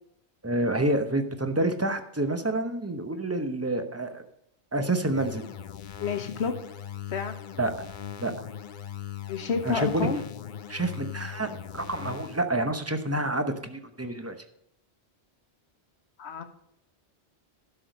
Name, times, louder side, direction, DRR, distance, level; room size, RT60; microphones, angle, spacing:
voice 1, 0.4-4.2 4.7-5.4 7.6-7.9 8.2-8.5 9.6-10.1 10.7-14.4, right 1 dB, 15° right, 7 dB, 0.8 m, -28 dB
sound 1, 5.1-12.5, left 10 dB, 55° left, 0.7 m, -40 dB
voice 2, 6.0-6.6 7.1-7.4 9.3-10.2 16.2-16.4, left 5 dB, 80° left, 8 dB, 1.3 m, -30 dB
12.0 x 6.4 x 5.2 m, 0.77 s
omnidirectional pair, 1.1 m